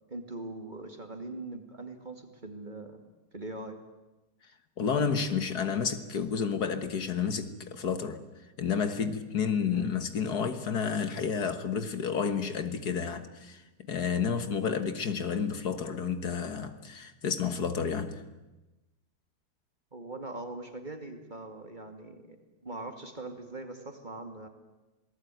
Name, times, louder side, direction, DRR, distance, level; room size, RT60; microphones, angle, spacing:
voice 1, 0.1-3.0 3.3-3.8 9.7-9.9 19.9-22.4 22.6-24.5, right 2 dB, 25° right, 2.5 m, -41 dB
voice 2, 4.8-8.2 8.6-13.6 13.9-18.2, left 6 dB, 65° left, 1.9 m, -30 dB
27.5 x 19.0 x 9.2 m
omnidirectional pair, 1.9 m